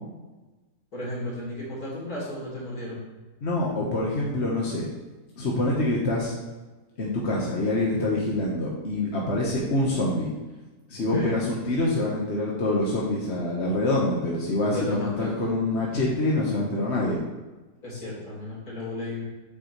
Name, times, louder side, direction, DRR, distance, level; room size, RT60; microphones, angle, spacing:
voice 1, 0.9-3.1 11.1-11.3 14.6-15.3 17.8-19.2, left 1 dB, 65° left, -5 dB, 3.7 m, -34 dB
voice 2, 3.4-4.9 5.4-6.3 7.0-10.3 10.9-17.2, left 2 dB, 45° left, -4 dB, 1.5 m, -25 dB
8.8 x 8.0 x 3.2 m, 1.2 s
omnidirectional pair, 1.7 m